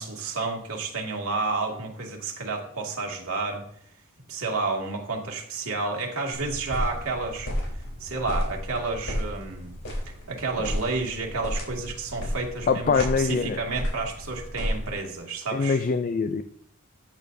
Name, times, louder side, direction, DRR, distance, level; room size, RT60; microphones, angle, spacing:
voice 1, 0.0-3.6 4.3-9.7 10.1-15.8, right 3 dB, 80° right, 0 dB, 2.3 m, -31 dB
sound 1, 6.3-15.0, equal, 60° left, 3.9 m, -33 dB
voice 2, 12.7-13.6 15.5-16.4, left 5 dB, 40° left, 9 dB, 0.4 m, -24 dB
13.5 x 8.6 x 2.7 m, 0.66 s
head